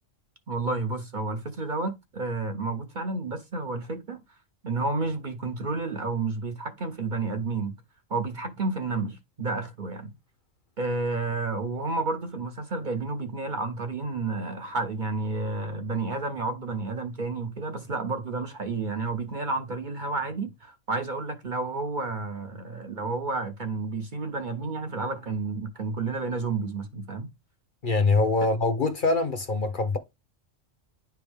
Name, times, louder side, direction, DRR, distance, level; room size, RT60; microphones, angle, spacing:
voice 1, 0.5-4.2 4.6-7.8 8.1-10.1 10.8-27.3, right 3 dB, 45° right, 0.8 m, -31 dB
voice 2, 27.8-30.0, left 3 dB, 45° left, 0.8 m, -24 dB
10.0 x 3.5 x 3.4 m
omnidirectional pair, 1.3 m